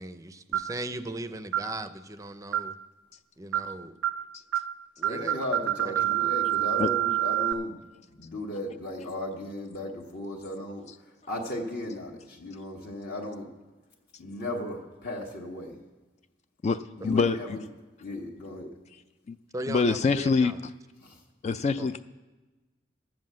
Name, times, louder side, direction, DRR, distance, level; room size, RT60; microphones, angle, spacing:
voice 1, 0.0-2.8 3.4-3.9 5.0-5.3 6.0-6.3 19.5-20.6 21.8-21.9, right 1 dB, 15° right, 11 dB, 0.5 m, -38 dB
sound 1, 0.5-0.8 1.5-1.7 2.5-2.8 3.5-3.7 4.0-4.2 4.5-4.7 5.0-7.5, right 13 dB, 80° right, 0.4 m, -27 dB
voice 2, 5.0-7.8 8.1-13.5 14.2-15.8 17.0-17.6 18.0-18.7 21.0-21.2, left 1 dB, 55° left, -1 dB, 1.4 m, -36 dB
voice 3, 16.6-17.6 19.3-19.4 19.7-20.5 21.4-22.0, left 4 dB, 35° left, 11 dB, 0.3 m, -25 dB
11.0 x 7.6 x 7.6 m, 1.2 s
head